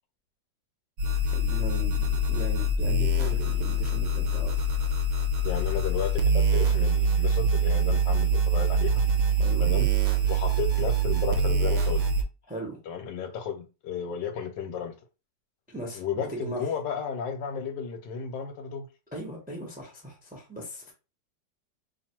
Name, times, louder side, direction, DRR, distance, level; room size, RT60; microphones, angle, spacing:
sound 1, 1.0-12.2, right 2 dB, 65° right, 0.9 m, -24 dB
voice 1, 1.2-4.6 9.4-9.6 12.5-12.8 15.7-16.7 19.1-20.9, right 1 dB, 10° right, 0.6 m, -38 dB
voice 2, 5.4-9.0 9.6-9.9 10.3-12.1 12.9-14.9 15.9-18.9, left 7 dB, 75° left, 1.3 m, -33 dB
2.9 x 2.5 x 4.3 m
omnidirectional pair, 2.0 m